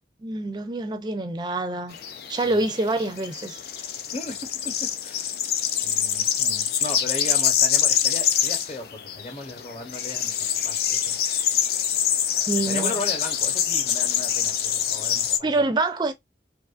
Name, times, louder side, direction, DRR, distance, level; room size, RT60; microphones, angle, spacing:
voice 1, 0.2-2.0 2.3-3.6 12.4-12.9 15.4-16.1, right 2 dB, 25° right, 0.4 m, -26 dB
sound 1, 1.9-15.4, left 9 dB, 60° left, 0.4 m, -25 dB
voice 2, 4.1-4.7 5.0-5.4 5.8-10.3 10.6-11.2 12.3-15.6, left 2 dB, 35° left, 0.8 m, -36 dB
2.7 x 2.4 x 2.3 m
head